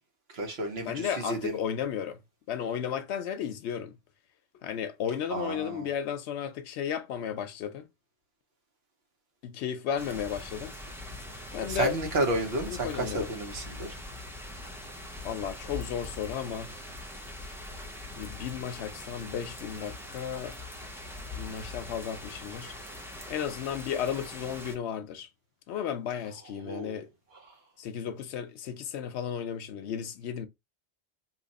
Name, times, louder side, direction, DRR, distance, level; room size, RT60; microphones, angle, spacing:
voice 1, 0.3-1.6 5.3-5.9 11.7-13.9 26.6-27.0, right 2 dB, 65° right, 1.1 m, -31 dB
voice 2, 0.8-2.2 2.5-3.9 4.6-7.8 9.4-10.7 11.5-12.0 12.7-13.3 15.2-16.7 18.1-20.6 21.3-22.7 23.3-25.3 25.7-27.1 27.8-30.5, left 8 dB, 75° left, 0.8 m, -34 dB
sound 1, 10.0-24.8, left 2 dB, 5° right, 0.4 m, -42 dB
2.9 x 2.5 x 4.0 m
omnidirectional pair, 1.2 m